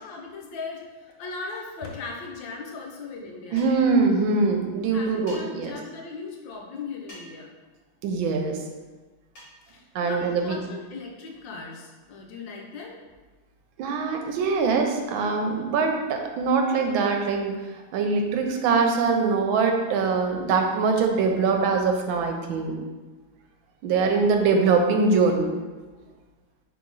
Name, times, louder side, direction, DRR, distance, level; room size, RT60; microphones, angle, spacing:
voice 1, 0.0-3.9 4.9-7.5 9.7-13.0, left 4 dB, 75° left, 0 dB, 1.3 m, -38 dB
voice 2, 3.5-5.7 8.0-8.6 9.9-10.6 13.8-17.5 17.9-22.8 23.8-25.5, right 4 dB, 80° right, 4 dB, 1.3 m, -23 dB
sound 1, 3.6-3.9 5.3-5.4 7.1-7.4 9.3-9.6, right 1 dB, 50° left, 1.7 m, -45 dB
3.8 x 3.2 x 3.8 m, 1.3 s
omnidirectional pair, 2.2 m